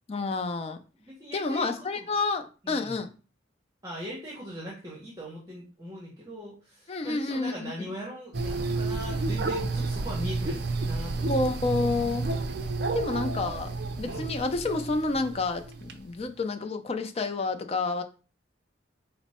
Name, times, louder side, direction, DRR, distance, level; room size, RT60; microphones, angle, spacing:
voice 1, 0.1-0.8 1.3-3.1 6.9-7.9 11.2-12.3 12.9-18.0, left 3 dB, 30° left, 7 dB, 0.4 m, -29 dB
voice 2, 1.0-2.1 2.6-3.0 3.8-11.5 14.0-14.4, equal, 20° right, -4 dB, 0.8 m, -40 dB
sound 1, 8.3-16.0, right 3 dB, 60° right, 0.4 m, -31 dB
4.3 x 2.0 x 4.1 m, 0.35 s
head